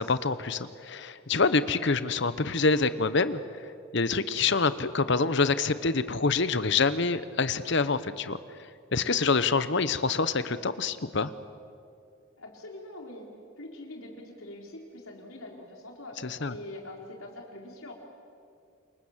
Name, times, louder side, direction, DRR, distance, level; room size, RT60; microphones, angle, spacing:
voice 1, 0.0-3.4 3.9-8.4 8.9-11.3 16.2-16.6, left 4 dB, 55° left, 14 dB, 0.9 m, -26 dB
voice 2, 12.4-13.3 13.6-16.2 16.5-17.9, left 1 dB, 75° left, 1 dB, 4.1 m, -43 dB
27.5 x 23.0 x 7.4 m, 2.4 s
head